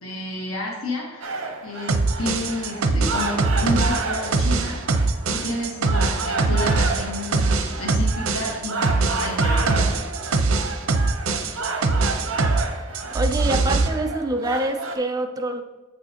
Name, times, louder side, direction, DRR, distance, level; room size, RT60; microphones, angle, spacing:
voice 1, 0.0-5.0 5.3-10.0, left 1 dB, 85° left, -1 dB, 1.3 m, -31 dB
sound 1, 1.2-15.0, right 3 dB, 65° right, 1.0 m, -31 dB
sound 2, 1.9-12.7 12.9-13.9, right 3 dB, 85° right, 0.6 m, -22 dB
voice 2, 13.1-15.6, right 1 dB, 15° right, 5 dB, 0.4 m, -25 dB
7.9 x 6.2 x 2.9 m, 1.1 s
head